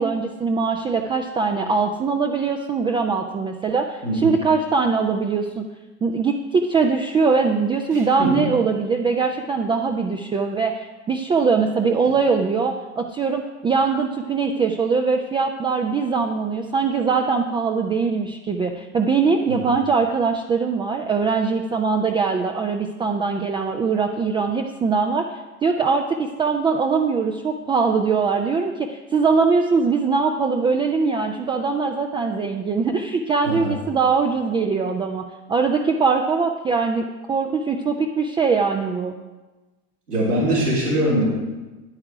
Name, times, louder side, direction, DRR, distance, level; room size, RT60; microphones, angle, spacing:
voice 1, 0.0-5.6 6.0-25.3 25.6-39.1, right 5 dB, 10° right, 3 dB, 0.4 m, -22 dB
voice 2, 4.0-4.3 7.9-8.4 19.5-19.7 33.4-33.8 40.1-41.2, right 1 dB, 90° right, -6 dB, 3.6 m, -22 dB
9.7 x 8.9 x 4.8 m, 1.2 s
figure-of-eight pair, 85°, 45 cm